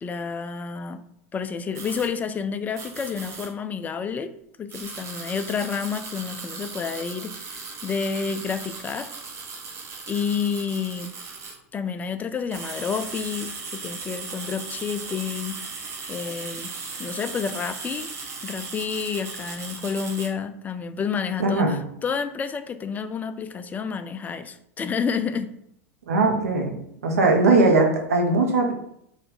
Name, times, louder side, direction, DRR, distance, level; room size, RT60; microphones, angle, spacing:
voice 1, 0.0-1.0 1.3-4.3 4.6-9.1 10.1-11.1 11.7-15.6 16.1-16.7 17.0-18.1 18.4-25.5, left 6 dB, 20° left, 10 dB, 0.4 m, -29 dB
sound 1, 1.7-2.1 2.7-3.5 4.7-11.6 12.3-20.3, right 4 dB, 35° right, 1.1 m, -37 dB
voice 2, 21.4-21.8 26.1-26.7 27.0-28.7, right 3 dB, 80° right, 2 dB, 0.9 m, -19 dB
4.4 x 2.6 x 4.1 m, 0.73 s
hypercardioid pair, 90°, 8 cm